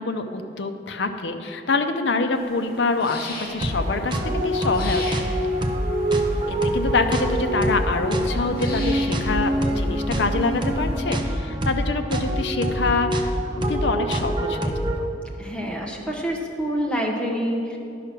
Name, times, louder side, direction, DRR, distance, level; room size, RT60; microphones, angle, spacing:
voice 1, 0.0-5.0 6.5-13.3 13.7-15.1, left 3 dB, 70° left, 6 dB, 0.6 m, -25 dB
sound 1, 2.3-11.0, left 1 dB, 50° left, 1.6 m, -39 dB
sound 2, 3.6-15.0, right 1 dB, 25° right, 0.7 m, -25 dB
voice 2, 15.4-17.8, equal, 5° left, -2 dB, 1.2 m, -27 dB
10.5 x 5.7 x 6.0 m, 2.7 s
head